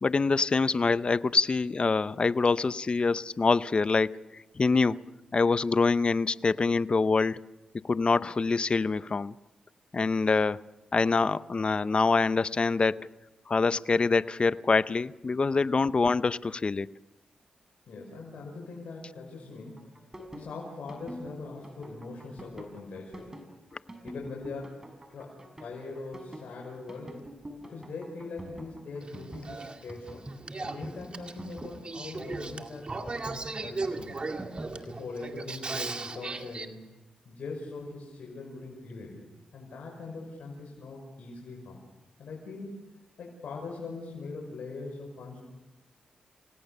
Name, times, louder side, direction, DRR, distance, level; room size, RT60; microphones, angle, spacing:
voice 1, 0.0-5.0 5.3-7.4 7.9-9.3 9.9-10.6 10.9-13.1 13.5-16.9, left 4 dB, 45° left, 16 dB, 0.7 m, -25 dB
voice 2, 17.9-19.8 20.3-23.4 24.0-24.8 25.1-27.2 27.6-30.3 30.6-34.2 34.9-36.8 37.3-39.2 39.5-41.8 42.2-42.8 43.2-45.4, left 3 dB, 75° left, -1 dB, 5.8 m, -41 dB
sound 1, 19.7-34.8, right 1 dB, 20° right, 5.9 m, -45 dB
Male speech man speaking / Female speech woman speaking / Conversation, 29.0-36.7, right 3 dB, 45° right, 2.2 m, -37 dB
28.5 x 17.5 x 6.7 m, 1.0 s
cardioid pair, 55°, 2 cm